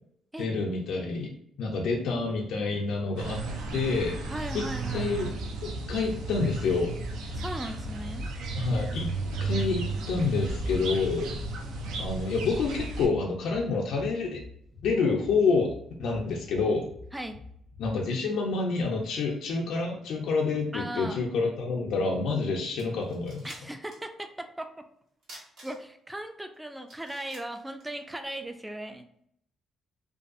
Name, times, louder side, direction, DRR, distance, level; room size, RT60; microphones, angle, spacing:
voice 1, 0.4-1.3 1.6-3.4 3.7-4.2 4.5-4.6 4.9-5.3 5.6-7.0 8.6-9.1 9.4-11.3 12.0-14.4 14.8-15.7 16.0-16.9 17.8-23.6, left 4 dB, 80° left, -2 dB, 0.4 m, -28 dB
sound 1, 3.2-13.1, right 3 dB, 85° right, 0.4 m, -34 dB
voice 2, 4.3-5.1 7.3-8.3 17.1-17.4 20.7-21.2 23.4-24.7 25.6-29.1, right 1 dB, 10° right, 6 dB, 0.3 m, -37 dB
sound 2, 12.0-17.9, left 4 dB, 40° right, 1.1 m, -48 dB
sound 3, 22.4-22.5 22.7-24.1 24.4-24.5 25.2-26.1 26.5-26.6 26.9-28.4, right 1 dB, 70° right, 1.2 m, -50 dB
2.5 x 2.3 x 2.5 m, 0.69 s
cardioid pair, 90°, 0 cm